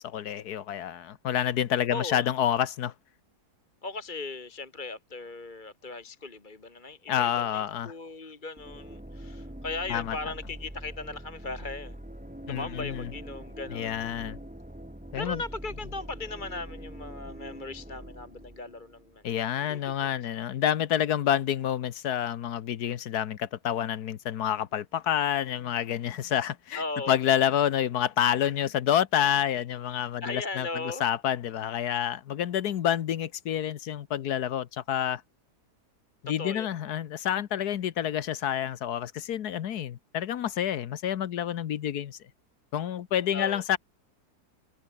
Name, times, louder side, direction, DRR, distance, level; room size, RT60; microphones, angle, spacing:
voice 1, 0.0-2.9 7.1-7.9 9.9-10.2 12.5-13.1 13.7-14.4 15.1-15.4 19.2-35.2 36.2-42.2 42.7-43.8, left 10 dB, 75° left, 1.5 m, -28 dB
voice 2, 1.9-2.3 3.8-12.0 12.5-14.0 15.2-19.2 19.6-19.8 26.7-27.1 30.2-31.0 36.4-36.7 43.3-43.6, left 3 dB, 30° left, 2.0 m, -38 dB
sound 1, 8.6-19.3, right 1 dB, 5° right, 2.1 m, -43 dB
omnidirectional pair, 1.7 m